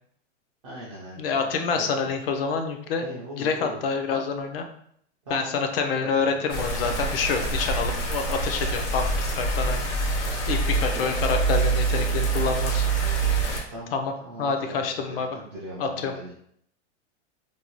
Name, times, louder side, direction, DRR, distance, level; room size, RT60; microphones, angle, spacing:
voice 1, 0.6-2.1 3.0-3.8 4.1-4.2 5.3-6.5 10.7-12.4 13.7-13.9 14.2-16.3, right 1 dB, 25° right, -7 dB, 0.4 m, -40 dB
voice 2, 1.2-3.1 3.3-4.7 5.3-12.8 13.5-13.6 13.9-14.1 14.4-15.3 15.8-16.1, left 5 dB, 55° left, 5 dB, 0.5 m, -27 dB
sound 1, 6.5-13.6, right 3 dB, 85° left, 0.9 m, -25 dB
2.6 x 2.0 x 2.9 m, 0.67 s
supercardioid pair, 165°, 35 cm